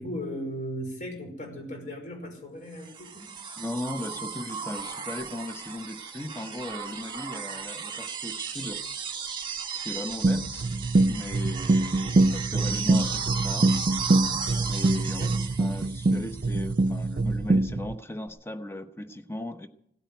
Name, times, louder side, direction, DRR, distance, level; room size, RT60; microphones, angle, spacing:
voice 1, 0.0-3.3 15.2-15.3, equal, 45° left, 2 dB, 5.3 m, -37 dB
sound 1, 2.8-16.8 18.3-18.4, right 6 dB, 25° right, 1.6 m, -35 dB
voice 2, 3.6-8.8 9.7-10.6 11.1-13.7 14.7-19.7, left 1 dB, 15° left, 9 dB, 0.9 m, -37 dB
sound 2, 10.2-18.0, right 2 dB, 50° right, 0.5 m, -24 dB
17.0 x 8.9 x 9.2 m, 0.74 s
head